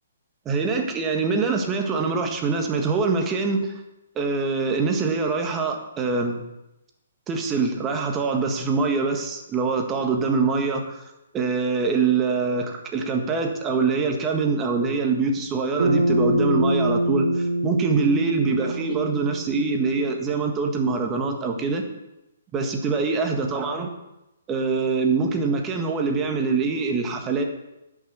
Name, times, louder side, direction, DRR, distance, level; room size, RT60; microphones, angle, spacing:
voice 1, 0.4-3.7 4.1-6.4 7.3-11.0 11.3-21.8 22.5-23.9 24.5-27.4, right 4 dB, 20° right, 3 dB, 1.7 m, -24 dB
Bass guitar, 15.8-20.2, right 1 dB, 65° right, 2.2 m, -24 dB
11.0 x 6.3 x 7.0 m, 0.93 s
figure-of-eight pair, 135°, 0 cm